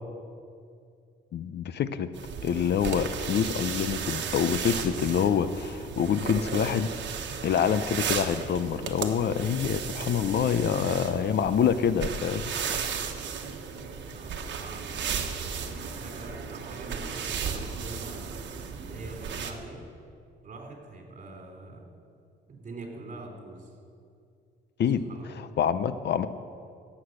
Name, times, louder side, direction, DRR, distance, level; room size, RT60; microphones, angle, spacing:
voice 1, 1.3-2.1 2.4-6.9 7.4-12.9 24.8-26.3, left 8 dB, 60° left, 12 dB, 0.7 m, -26 dB
sound 1, 2.1-19.5, right 6 dB, 65° right, 1.4 m, -35 dB
voice 2, 10.7-11.3 14.1-18.4 18.8-19.8 20.4-21.8 22.5-23.7 25.1-25.5, right 2 dB, 40° right, 1 dB, 3.5 m, -43 dB
16.0 x 8.4 x 6.6 m, 2.4 s
cardioid pair, 90°, 20 cm